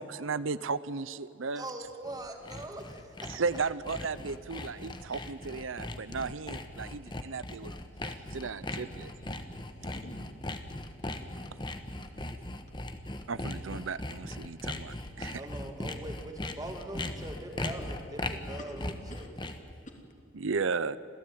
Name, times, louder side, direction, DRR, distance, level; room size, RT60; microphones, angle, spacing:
voice 1, 0.0-1.6 3.3-9.1 13.3-15.4 20.4-21.0, right 4 dB, 90° right, 16 dB, 0.7 m, -35 dB
voice 2, 1.5-2.8 3.3-3.4 15.2-19.2, right 1 dB, 20° right, 4 dB, 2.5 m, -42 dB
Sawing, 1.9-19.7, left 1 dB, 25° left, 1.3 m, -39 dB
voice 3, 9.7-10.2 11.1-11.5 17.0-17.1 18.6-19.3 19.8-20.5, left 1 dB, 40° left, 2 dB, 3.0 m, -50 dB
27.0 x 16.0 x 9.2 m, 2.5 s
head